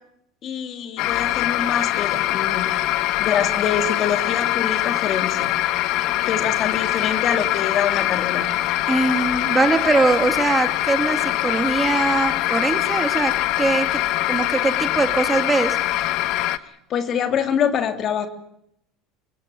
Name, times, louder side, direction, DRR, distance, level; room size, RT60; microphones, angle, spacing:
voice 1, 0.4-2.7 3.2-5.5 6.3-8.4 16.9-18.3, left 7 dB, 45° left, 7 dB, 3.0 m, -25 dB
sound 1, 1.0-16.6, left 15 dB, 60° left, 1.1 m, -23 dB
voice 2, 8.9-14.0 14.3-15.8, right 3 dB, 20° right, 8 dB, 2.4 m, -22 dB
27.5 x 17.0 x 9.3 m, 0.78 s
hypercardioid pair, 90°, 0 cm